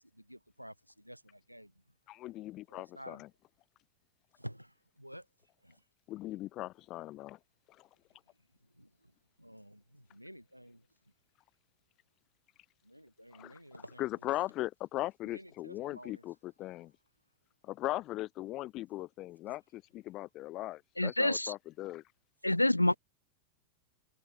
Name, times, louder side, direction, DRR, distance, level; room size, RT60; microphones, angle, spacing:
voice 1, 0.1-1.7 2.7-3.2 4.4-5.2 5.6-5.7 8.8-8.9 9.4-10.8 12.8-14.0 15.3-16.2 22.5-23.0, equal, 90° right, 6.8 m, -50 dB
voice 2, 2.1-3.3 6.1-7.4 7.8-7.9 13.3-13.6 14.0-16.9 17.6-22.0, left 16 dB, 35° left, 7.0 m, -39 dB
voice 3, 21.0-21.5 22.4-22.9, left 1 dB, 85° left, 0.8 m, -27 dB
figure-of-eight pair, 90°, 0 cm